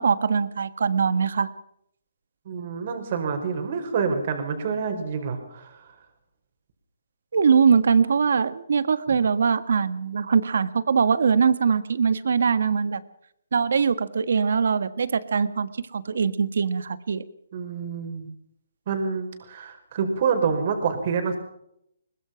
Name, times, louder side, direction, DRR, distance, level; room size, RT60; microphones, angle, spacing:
voice 1, 0.0-1.5 7.3-13.0 13.5-17.2, right 6 dB, 70° right, 15 dB, 1.5 m, -22 dB
voice 2, 2.4-5.9 9.1-9.2 17.5-18.3 18.9-21.4, right 5 dB, 45° right, 6 dB, 4.9 m, -27 dB
22.5 x 20.0 x 5.9 m, 0.75 s
hypercardioid pair, 155°, 0 cm